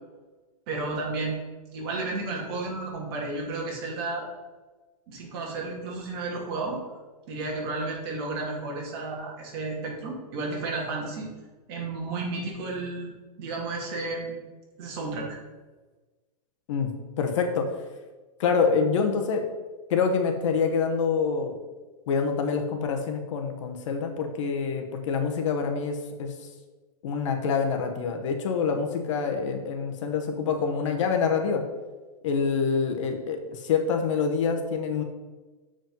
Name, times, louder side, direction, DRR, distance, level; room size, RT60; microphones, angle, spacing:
voice 1, 0.7-1.4 1.7-4.3 5.1-6.8 7.3-11.3 11.7-14.4 14.8-15.4, right 3 dB, 40° right, -2 dB, 2.3 m, -32 dB
voice 2, 17.2-17.7 18.4-19.4 19.9-21.6 22.1-26.3 27.0-31.6 32.2-35.0, left 5 dB, 50° left, 4 dB, 1.0 m, -26 dB
7.4 x 5.1 x 5.3 m, 1.2 s
supercardioid pair, 170°, 20 cm